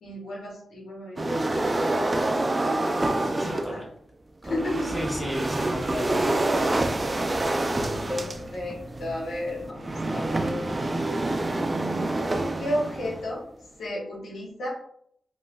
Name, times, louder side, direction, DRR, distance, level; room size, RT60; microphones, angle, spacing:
voice 1, 0.0-1.6 3.4-3.8 4.4-5.0 7.3-12.3 12.6-13.4 13.8-14.7, left 1 dB, 85° left, -4 dB, 0.9 m, -34 dB
sound 1, 1.2-3.8 4.4-13.3, right 2 dB, 35° right, 0.3 m, -27 dB
voice 2, 3.2-3.8 4.4-4.5 4.9-6.4, equal, ahead, -3 dB, 1.3 m, -33 dB
3.1 x 2.2 x 2.4 m, 0.66 s
cardioid pair, 50°, 0 cm